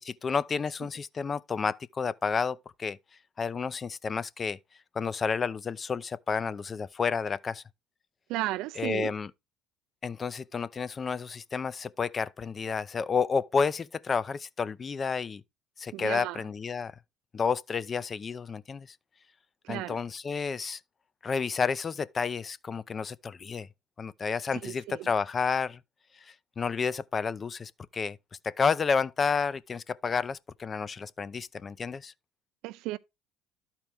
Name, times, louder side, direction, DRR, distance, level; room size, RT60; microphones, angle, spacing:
voice 1, 0.0-3.0 3.4-4.6 5.0-7.6 8.8-9.3 10.0-15.4 15.8-16.9 17.3-18.9 19.7-20.8 21.2-23.7 24.0-25.8 26.6-28.2 28.4-32.1, left 5 dB, 35° left, 0.4 m, -30 dB
voice 2, 8.3-9.1 15.9-16.4 19.6-20.0 24.6-25.1 32.6-33.0, right 17 dB, 70° right, 0.4 m, -34 dB
12.5 x 4.5 x 3.5 m
hypercardioid pair, 70°, 0 cm